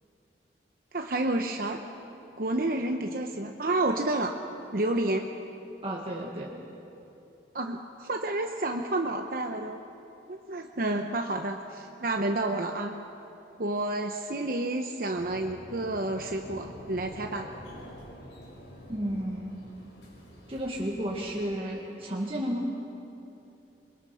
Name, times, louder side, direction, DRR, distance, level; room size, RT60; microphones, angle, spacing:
voice 1, 0.9-1.8 2.4-4.4 4.7-5.3 7.5-9.8 10.3-12.9 13.6-17.5, right 2 dB, 55° right, 4 dB, 0.9 m, -30 dB
voice 2, 5.8-6.5 18.9-19.6 20.5-22.7, equal, 30° right, -3 dB, 1.7 m, -32 dB
sound 1, 15.1-21.4, equal, 85° left, 5.5 m, -47 dB
26.5 x 22.0 x 5.7 m, 2.9 s
head